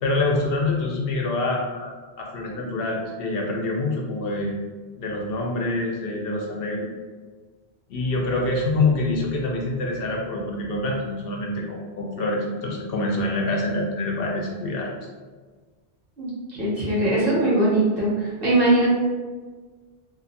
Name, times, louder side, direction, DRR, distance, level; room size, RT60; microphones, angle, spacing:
voice 1, 0.0-4.5 5.0-6.8 7.9-14.9, left 2 dB, 65° left, -1 dB, 0.7 m, -26 dB
voice 2, 16.2-18.9, right 1 dB, 55° right, -7 dB, 1.0 m, -21 dB
2.4 x 2.4 x 2.6 m, 1.4 s
omnidirectional pair, 1.1 m